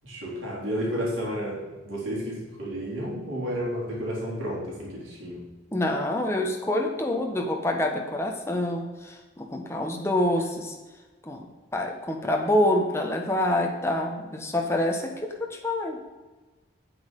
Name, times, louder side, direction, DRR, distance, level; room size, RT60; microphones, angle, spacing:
voice 1, 0.0-5.4, equal, 80° right, -5 dB, 3.8 m, -31 dB
voice 2, 5.7-10.8 11.2-16.0, left 1 dB, 15° left, 1 dB, 1.2 m, -27 dB
8.9 x 7.9 x 5.4 m, 1.2 s
head